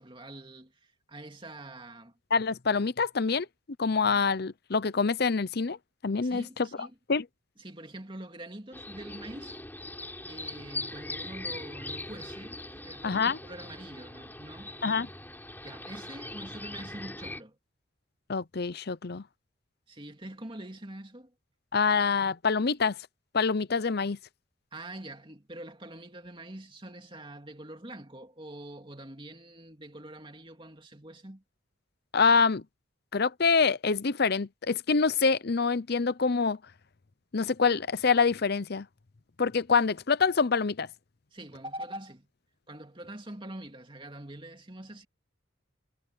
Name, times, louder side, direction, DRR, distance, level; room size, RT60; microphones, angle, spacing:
voice 1, 0.0-2.2 6.2-6.9 7.6-9.6 10.2-14.7 15.6-17.6 19.9-21.3 24.7-31.4 41.3-42.3 42.7-45.1, right 1 dB, 25° right, 2.7 m, -44 dB
voice 2, 2.3-3.5 3.8-5.8 6.0-6.4 7.1-7.2 13.0-13.4 14.8-15.1 18.3-19.2 21.7-23.0 23.3-24.2 32.1-32.6 33.1-36.6 37.3-38.9 39.4-40.9, left 5 dB, 50° left, 0.7 m, -25 dB
sound 1, 8.7-17.4, left 2 dB, 10° left, 7.5 m, -41 dB
head